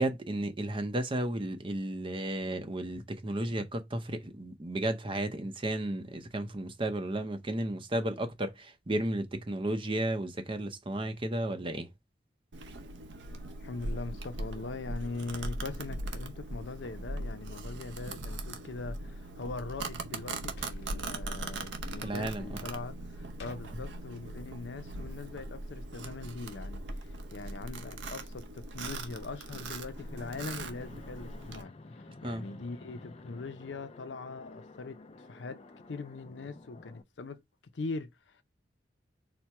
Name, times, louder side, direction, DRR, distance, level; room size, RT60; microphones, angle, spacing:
voice 1, 0.0-11.9 22.0-22.4 32.2-32.4, right 1 dB, 30° right, 0.6 m, -33 dB
Domestic sounds home sounds, 12.5-31.6, right 2 dB, 85° right, 0.7 m, -40 dB
voice 2, 13.6-37.4 37.7-38.4, left 3 dB, 85° left, 0.6 m, -41 dB
sound 1, 20.6-21.1 23.4-23.6, left 2 dB, 70° left, 0.9 m, -49 dB
Fixed-wing aircraft airplane, 30.0-37.0, left 2 dB, 35° left, 0.5 m, -50 dB
4.3 x 2.2 x 4.5 m
head